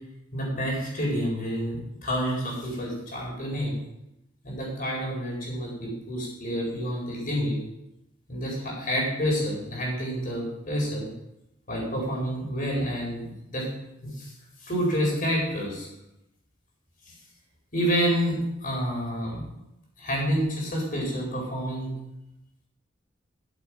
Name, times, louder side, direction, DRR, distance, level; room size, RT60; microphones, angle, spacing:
voice 1, 0.3-3.8 4.4-7.6 8.3-11.1 11.7-13.7 14.1-14.3 14.6-15.9 17.1-17.2 17.7-19.4 20.0-21.9, equal, 45° left, -2 dB, 4.6 m, -28 dB
13.0 x 7.9 x 4.9 m, 0.87 s
head